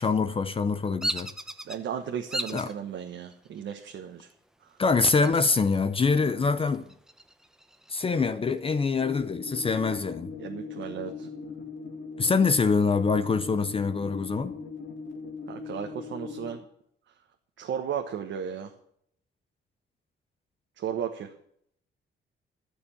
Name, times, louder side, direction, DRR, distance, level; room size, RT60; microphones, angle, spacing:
voice 1, 0.0-1.3 2.5-2.7 4.8-6.8 7.9-10.3 12.2-14.5, left 4 dB, 25° left, 0.7 m, -25 dB
Bird vocalization bird call bird song, 1.0-1.8 2.3-2.7 3.3-3.8 5.0-5.8 6.1-6.2 6.7-8.1, right 1 dB, 5° right, 0.8 m, -35 dB
voice 2, 1.6-4.3 10.4-11.3 15.5-16.6 17.6-18.7 20.8-21.3, right 8 dB, 65° right, 1.3 m, -35 dB
sound 1, 9.0-16.5, left 4 dB, 70° left, 2.3 m, -39 dB
13.0 x 7.0 x 8.6 m
cardioid pair, 140°, 21 cm